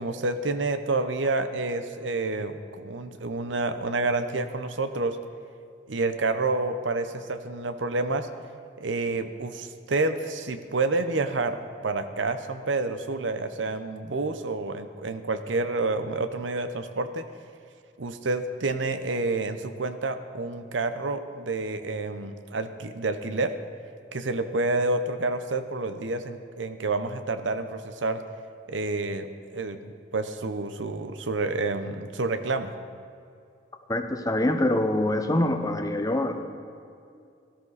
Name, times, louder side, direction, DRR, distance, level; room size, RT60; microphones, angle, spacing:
voice 1, 0.0-5.2 5.9-8.3 8.8-17.2 18.0-23.5 24.1-28.2 28.7-32.7, right 3 dB, 90° right, 9 dB, 0.8 m, -29 dB
voice 2, 33.9-36.4, left 1 dB, 20° left, 6 dB, 0.9 m, -25 dB
18.0 x 13.5 x 4.1 m, 2.4 s
head